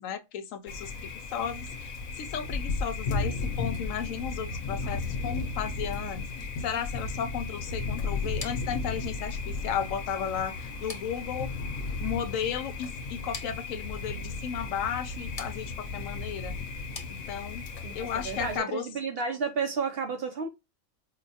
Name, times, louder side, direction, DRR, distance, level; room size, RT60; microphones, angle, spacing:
voice 1, 0.0-6.2 6.6-11.5 12.0-16.5 17.1-17.7 17.9-18.9, left 8 dB, 75° left, 1.0 m, -34 dB
Thunder, 0.7-18.6, left 4 dB, 90° left, 1.1 m, -35 dB
sound 1, 8.4-17.7, left 4 dB, 45° left, 0.5 m, -48 dB
voice 2, 17.8-20.5, right 5 dB, 60° right, 0.6 m, -32 dB
4.8 x 2.1 x 2.6 m
omnidirectional pair, 1.4 m